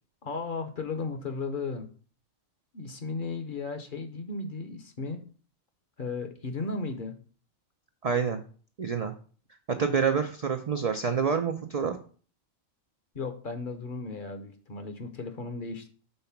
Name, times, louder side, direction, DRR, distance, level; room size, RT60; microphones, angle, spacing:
voice 1, 0.2-1.9 2.7-5.2 6.0-7.2 13.1-15.9, left 4 dB, 45° left, 7 dB, 0.8 m, -35 dB
voice 2, 8.0-8.4 8.8-9.1 9.7-11.9, right 6 dB, 75° right, 6 dB, 0.3 m, -27 dB
5.5 x 3.9 x 5.7 m, 0.42 s
omnidirectional pair, 1.4 m